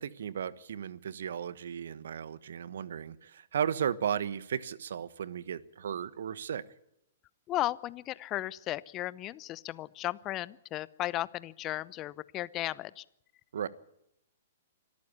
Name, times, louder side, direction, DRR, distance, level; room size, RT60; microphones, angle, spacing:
voice 1, 0.0-6.6 13.5-13.7, right 8 dB, 65° right, 18 dB, 1.2 m, -35 dB
voice 2, 7.5-13.0, left 15 dB, 30° left, 20 dB, 0.8 m, -35 dB
25.0 x 14.0 x 8.5 m, 0.78 s
figure-of-eight pair, 115°, 0 cm